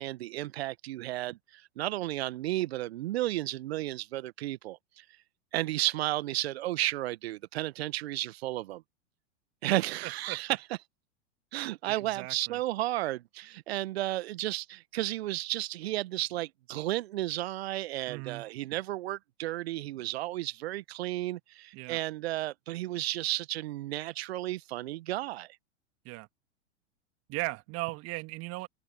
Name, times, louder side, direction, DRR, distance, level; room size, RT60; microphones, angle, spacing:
voice 1, 0.0-5.0 5.5-8.8 9.6-10.6 11.5-25.5, right 16 dB, 55° right, 1.2 m, -33 dB
voice 2, 10.0-10.4 11.9-12.6 18.1-18.5 21.7-22.0 26.0-26.3 27.3-28.7, right 23 dB, 40° right, 2.1 m, -37 dB
open air
figure-of-eight pair, 95°, 37 cm